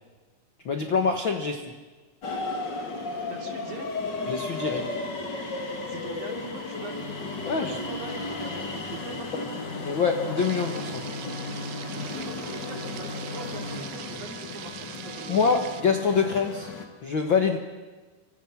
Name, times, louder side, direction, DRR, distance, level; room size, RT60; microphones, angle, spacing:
voice 1, 0.6-1.7 4.3-5.0 7.5-7.8 9.8-11.0 15.3-16.7 17.0-17.6, left 5 dB, 60° left, 5 dB, 1.2 m, -25 dB
sound 1, 2.2-16.8, left 3 dB, 35° left, 2.5 m, -34 dB
voice 2, 3.3-3.9 5.9-9.5 12.0-15.5, right 4 dB, 50° right, 3 dB, 4.2 m, -42 dB
sound 2, 10.4-15.8, right 12 dB, 85° right, 3.0 m, -42 dB
28.0 x 25.0 x 6.1 m, 1.4 s
omnidirectional pair, 4.5 m